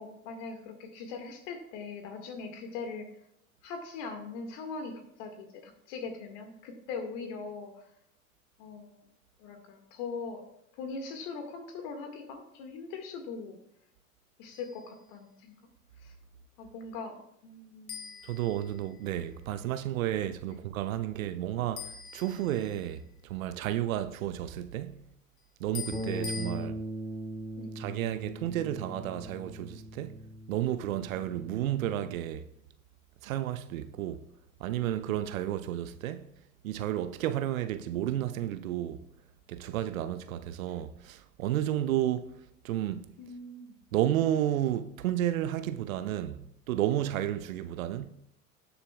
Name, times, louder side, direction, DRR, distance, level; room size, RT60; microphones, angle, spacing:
voice 1, 0.0-3.1 3.6-7.8 8.6-9.1 9.4-10.4 10.8-13.6 14.4-15.6 16.0-16.1 16.6-18.2 20.5-20.6 27.6-27.7 43.2-43.8, left 4 dB, 60° left, 1.9 m, -41 dB
sound 1, 14.5-14.9 17.9-19.2 21.8-23.0 25.7-26.5, left 7 dB, 35° left, 1.5 m, -43 dB
voice 2, 18.2-25.0 25.6-26.8 27.8-30.2 30.5-32.5 33.2-34.2 34.6-36.3 36.6-39.0 39.5-42.4 42.6-43.1 43.9-48.1, right 12 dB, 75° right, 0.7 m, -32 dB
Bass guitar, 25.9-32.2, right 1 dB, 5° left, 2.2 m, -40 dB
18.5 x 6.9 x 2.4 m
hypercardioid pair, 85°, 41 cm